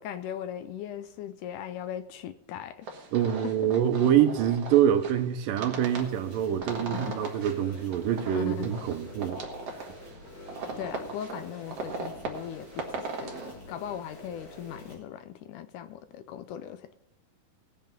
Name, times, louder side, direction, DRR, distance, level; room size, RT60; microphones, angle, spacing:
voice 1, 0.0-2.9 3.2-3.7 6.9-7.2 8.3-8.7 10.8-16.9, left 10 dB, 80° left, 12 dB, 2.0 m, -39 dB
sound 1, 2.8-13.6, right 3 dB, 50° right, 2.3 m, -39 dB
voice 2, 3.1-9.4, right 10 dB, 80° right, 8 dB, 2.6 m, -25 dB
sound 2, 5.8-15.0, left 1 dB, 40° left, 6.6 m, -47 dB
18.5 x 8.0 x 5.4 m, 0.82 s
omnidirectional pair, 4.0 m